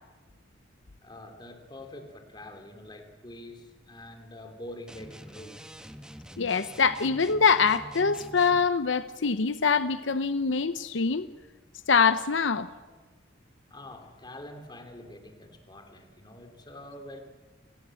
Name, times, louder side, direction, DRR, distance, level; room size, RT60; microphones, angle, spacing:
voice 1, 1.0-5.8 13.7-17.2, left 1 dB, 25° left, 3.0 m, -45 dB
sound 1, 4.9-8.7, equal, 5° right, 1.1 m, -46 dB
voice 2, 6.4-11.3 11.9-12.7, left 5 dB, 80° left, 0.8 m, -24 dB
29.5 x 19.5 x 7.7 m
head